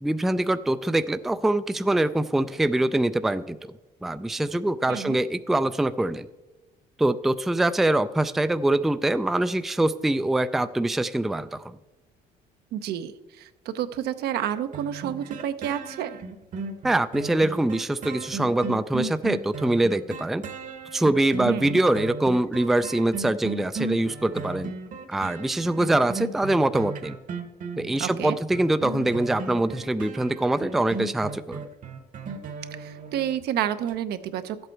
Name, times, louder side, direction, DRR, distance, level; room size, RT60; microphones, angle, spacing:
voice 1, 0.0-3.7 4.0-6.3 7.0-11.8 16.8-20.4 20.9-24.7 25.1-27.2 27.8-31.7, right 1 dB, ahead, 12 dB, 0.3 m, -24 dB
voice 2, 12.7-16.2 21.4-21.8 28.0-28.4 32.8-34.7, right 10 dB, 75° right, 10 dB, 0.7 m, -30 dB
sound 1, 14.7-33.4 33.9-34.0, right 4 dB, 50° right, 1.0 m, -36 dB
12.0 x 8.0 x 4.5 m, 1.1 s
cardioid pair, 110°, 17 cm